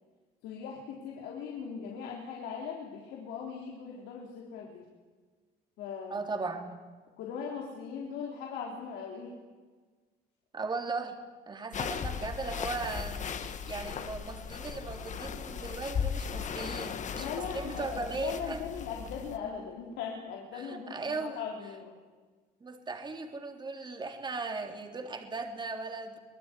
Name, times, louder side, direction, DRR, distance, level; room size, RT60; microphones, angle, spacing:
voice 1, 0.4-4.9 5.8-6.2 7.2-9.4 17.1-21.9, left 6 dB, 85° left, -1 dB, 3.8 m, -39 dB
voice 2, 6.1-6.8 10.5-11.2 11.5-18.6 20.6-21.4 22.6-26.2, right 3 dB, 25° right, 4 dB, 3.4 m, -37 dB
sound 1, 11.7-19.4, left 7 dB, 45° left, 1.7 m, -37 dB
25.0 x 19.0 x 9.9 m, 1.4 s
cardioid pair, 110°, 17 cm